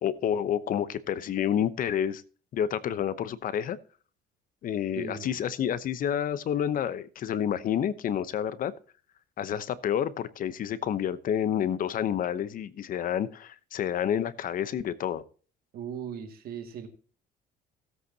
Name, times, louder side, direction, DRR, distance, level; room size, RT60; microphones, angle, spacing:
voice 1, 0.0-2.2 2.5-3.8 4.6-8.7 9.4-15.2, left 9 dB, 55° left, 16 dB, 0.9 m, -29 dB
voice 2, 5.0-5.4 15.7-16.9, right 7 dB, 65° right, 6 dB, 2.2 m, -38 dB
17.0 x 8.2 x 2.8 m, 0.40 s
cardioid pair, 110°, 17 cm